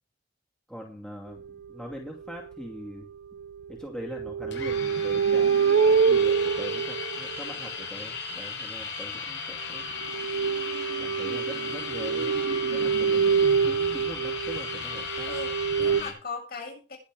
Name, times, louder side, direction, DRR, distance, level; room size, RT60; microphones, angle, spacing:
voice 1, 0.7-3.1 3.7-5.6 5.9-9.8 11.0-12.4 12.6-15.3 15.8-16.1, equal, 5° left, -1 dB, 2.4 m, -42 dB
sound 1, 1.4-1.5 2.2-2.5 3.4-7.8 10.0-16.0, right 6 dB, 75° right, 0.6 m, -26 dB
sound 2, 4.5-16.1, left 5 dB, 80° left, 7.3 m, -36 dB
voice 2, 11.3-11.7 15.3-17.0, left 4 dB, 60° left, -1 dB, 7.7 m, -39 dB
21.5 x 7.2 x 3.6 m, 0.35 s
head